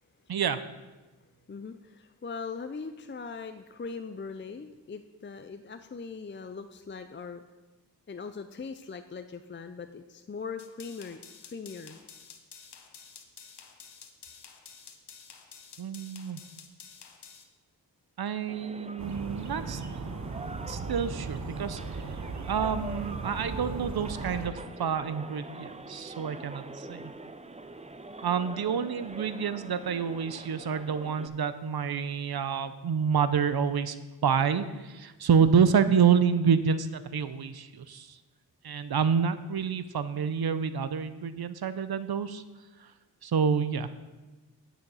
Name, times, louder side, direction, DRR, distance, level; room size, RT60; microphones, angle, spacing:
voice 1, 0.3-0.6 15.8-16.4 18.2-19.8 20.7-21.8 22.5-27.1 28.2-34.0 34.2-38.2 38.6-42.4 42.8-42.9 43.2-43.9, right 7 dB, 60° right, 13 dB, 0.7 m, -28 dB
voice 2, 1.5-7.4 8.1-11.2 11.5-12.0, left 5 dB, 25° left, 9 dB, 0.5 m, -40 dB
sound 1, 10.6-17.4, left 6 dB, 70° left, 1.2 m, -50 dB
sound 2, 18.5-31.3, right 2 dB, 15° right, 0.6 m, -44 dB
sound 3, 19.0-24.5, right 4 dB, 40° right, 1.0 m, -37 dB
9.2 x 7.1 x 5.6 m, 1.2 s
cardioid pair, 45°, 42 cm